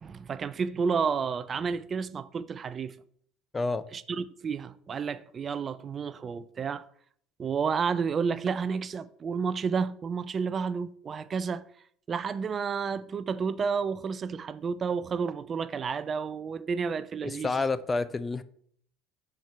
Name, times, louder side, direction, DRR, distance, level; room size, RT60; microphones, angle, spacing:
voice 1, 0.0-3.0 3.9-6.9 7.4-11.7 12.1-17.5, right 6 dB, 35° right, 0.4 m, -31 dB
voice 2, 3.5-3.9 17.2-18.4, left 3 dB, 25° left, 0.5 m, -29 dB
5.6 x 4.5 x 4.6 m
hypercardioid pair, 80°, 0 cm